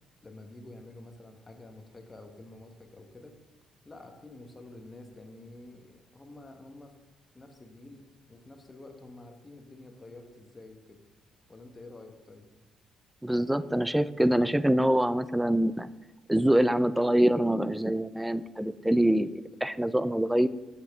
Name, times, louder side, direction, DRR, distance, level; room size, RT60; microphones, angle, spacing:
voice 1, 0.2-3.4 3.8-6.9 7.3-11.0 11.5-12.5, left 2 dB, 25° left, 4 dB, 1.4 m, -49 dB
voice 2, 13.2-15.9 16.3-20.5, right 1 dB, 5° right, 15 dB, 0.4 m, -25 dB
7.6 x 7.2 x 3.7 m, 1.2 s
hypercardioid pair, 55°, 0 cm